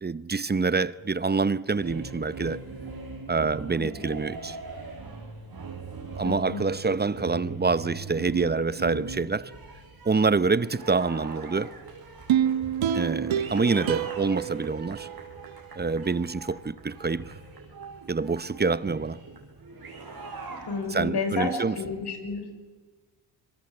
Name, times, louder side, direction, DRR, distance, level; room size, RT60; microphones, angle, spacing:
voice 1, 0.0-2.6 3.3-4.6 6.1-9.5 10.0-11.7 12.9-15.1 15.8-17.2 18.1-19.2 20.9-21.8, right 4 dB, 20° right, 0.8 m, -26 dB
sound 1, 1.6-21.2, right 3 dB, 45° right, 7.5 m, -41 dB
voice 2, 6.2-6.6 20.7-22.6, left 3 dB, 50° left, 5.6 m, -31 dB
sound 2, 12.3-15.6 16.0-16.1, right 9 dB, 70° right, 1.4 m, -28 dB
27.0 x 22.0 x 7.9 m
supercardioid pair, 60°, 49 cm